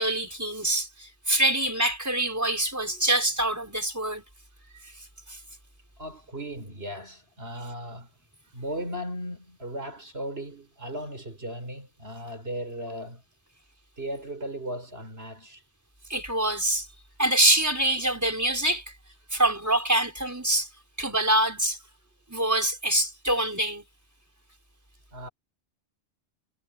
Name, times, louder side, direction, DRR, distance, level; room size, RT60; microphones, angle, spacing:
voice 1, 0.0-4.2 4.8-4.9 5.3-5.4 16.1-16.9 17.2-18.8 19.3-20.7 21.0-21.8 22.3-23.8, right 1 dB, 15° right, 5.5 m, -25 dB
voice 2, 6.0-8.1 8.5-13.2 14.0-15.6 25.1-25.3, equal, 60° right, 5.3 m, -36 dB
omnidirectional pair, 1.2 m